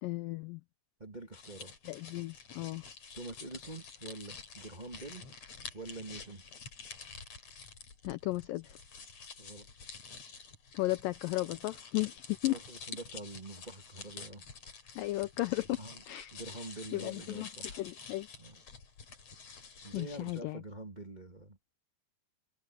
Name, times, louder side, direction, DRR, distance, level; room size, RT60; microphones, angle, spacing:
voice 1, 0.0-0.6 1.9-2.8 8.0-8.8 10.7-12.6 15.0-15.7 16.1-16.3 16.9-17.5 17.8-18.3 19.9-20.6, left 19 dB, 85° left, 1.9 m, -34 dB
voice 2, 1.0-1.7 3.1-5.3 5.7-6.4 9.4-9.7 12.4-14.4 15.8-16.0 16.3-17.8 18.4-18.6 19.8-21.8, right 2 dB, 85° right, 0.4 m, -46 dB
sound 1, 1.3-20.4, left 5 dB, 45° left, 4.4 m, -49 dB
omnidirectional pair, 4.6 m